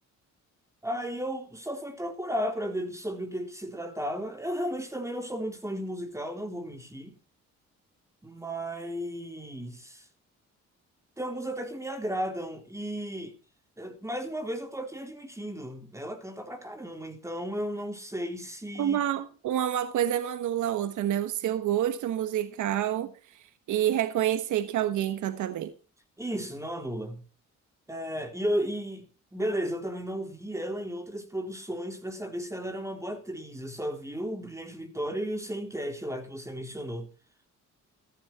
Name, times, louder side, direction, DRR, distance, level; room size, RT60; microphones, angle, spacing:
voice 1, 0.8-7.2 8.2-10.0 11.2-13.3 13.8-19.0 26.2-27.2 27.9-37.1, equal, 10° right, 4.1 m, -34 dB
voice 2, 18.8-23.1 23.7-25.7, right 11 dB, 75° right, 1.3 m, -28 dB
15.0 x 14.0 x 4.6 m
cardioid pair, 90°, 30 cm